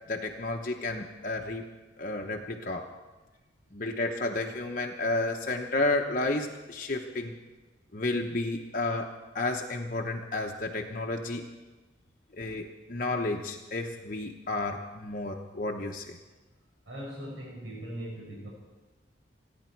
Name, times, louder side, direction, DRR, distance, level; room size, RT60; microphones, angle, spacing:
voice 1, 0.1-1.6 2.0-2.9 3.7-7.3 7.9-9.1 9.3-11.5 12.3-16.2, left 2 dB, 45° left, 1 dB, 0.9 m, -31 dB
voice 2, 16.8-18.5, right 1 dB, 80° right, -4 dB, 5.2 m, -40 dB
28.5 x 10.5 x 4.6 m, 1.2 s
head